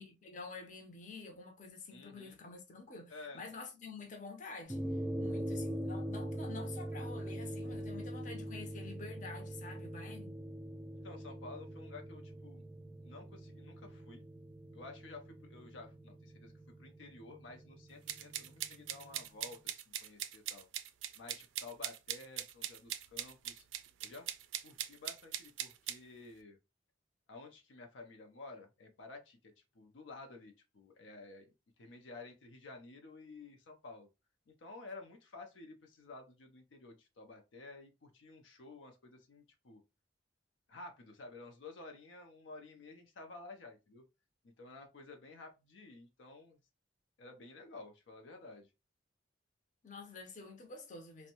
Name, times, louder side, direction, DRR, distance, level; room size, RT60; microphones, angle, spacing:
voice 1, 0.0-4.9 5.2-10.3 49.8-51.3, left 4 dB, 45° left, 0.6 m, -48 dB
voice 2, 1.9-2.4 3.1-3.5 11.0-12.6 13.0-14.3 14.7-16.5 16.8-20.7 21.2-23.7 24.0-24.3 24.6-26.6 27.3-34.1 34.5-39.8 40.7-44.0 44.4-46.6 47.2-48.7, left 3 dB, 85° left, 0.5 m, -52 dB
sound 1, 4.7-19.2, right 1 dB, 10° right, 0.3 m, -43 dB
sound 2, 18.1-26.0, right 12 dB, 90° right, 0.3 m, -41 dB
2.6 x 2.1 x 2.8 m
head